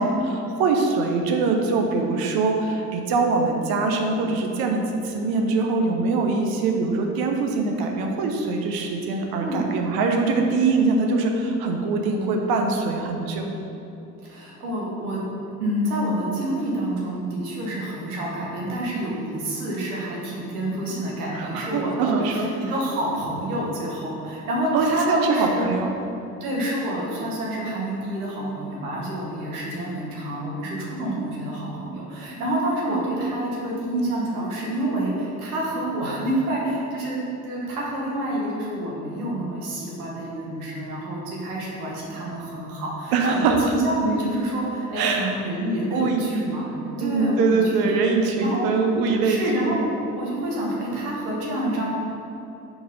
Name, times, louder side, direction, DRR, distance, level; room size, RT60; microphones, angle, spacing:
voice 1, 0.0-13.5 21.3-22.5 24.7-25.9 32.9-33.4 43.1-43.6 45.0-45.3 45.9-46.2 47.0-49.8, right 3 dB, 55° right, 2 dB, 0.9 m, -23 dB
voice 2, 14.2-15.2 15.6-25.7 26.4-43.4 43.7-48.0 48.4-48.7 49.2-51.9, right 1 dB, 75° right, -4 dB, 1.4 m, -28 dB
4.5 x 4.2 x 5.4 m, 2.9 s
figure-of-eight pair, 55°, 44 cm